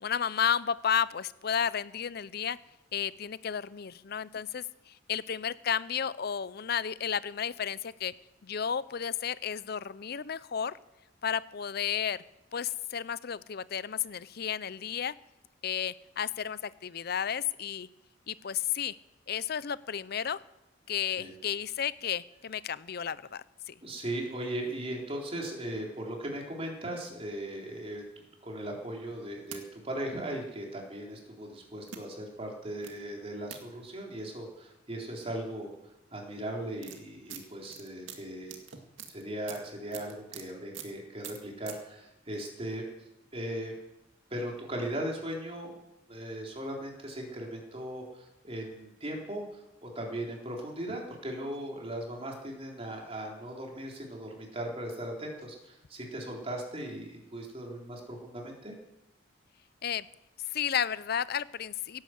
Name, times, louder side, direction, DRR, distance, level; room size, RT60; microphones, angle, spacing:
voice 1, 0.0-2.6 2.9-8.1 8.4-10.8 11.2-12.2 12.5-15.1 15.6-17.9 18.3-18.9 19.3-20.4 20.9-23.8 59.8-60.1 60.5-62.0, left 8 dB, 55° left, 18 dB, 0.6 m, -32 dB
voice 2, 23.8-28.0 28.4-35.7 36.1-38.6 39.1-42.8 43.3-43.7 44.3-45.7 46.1-49.4 49.8-58.7, right 1 dB, 30° right, 0 dB, 3.9 m, -38 dB
sound 1, 29.1-29.6 30.5-30.6 31.8-32.0 32.8-32.9 33.5-33.6 35.1-35.2 35.4-35.7 36.4-40.4 40.7-40.9 41.2-41.7, right 8 dB, 85° right, 2.2 m, -44 dB
17.5 x 10.5 x 7.9 m, 0.91 s
head